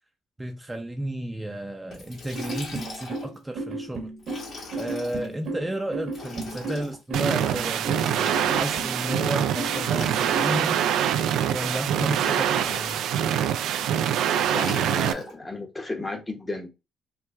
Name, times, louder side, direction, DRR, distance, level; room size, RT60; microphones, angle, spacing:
voice 1, 0.4-4.1 4.8-11.1 11.5-13.0, right 1 dB, 10° right, 0.5 m, -33 dB
Liquid, 1.9-3.3 4.2-5.3 6.1-7.0 7.9-9.0 9.8-11.0 12.0-13.0 14.3-15.3, left 2 dB, 60° left, 1.8 m, -40 dB
sound 1, 2.3-10.6, right 2 dB, 65° right, 1.2 m, -34 dB
sound 2, 7.1-15.1, right 9 dB, 85° right, 0.3 m, -24 dB
voice 2, 14.5-16.7, left 2 dB, 20° left, 0.9 m, -33 dB
4.5 x 2.2 x 2.4 m
cardioid pair, 90°, 0 cm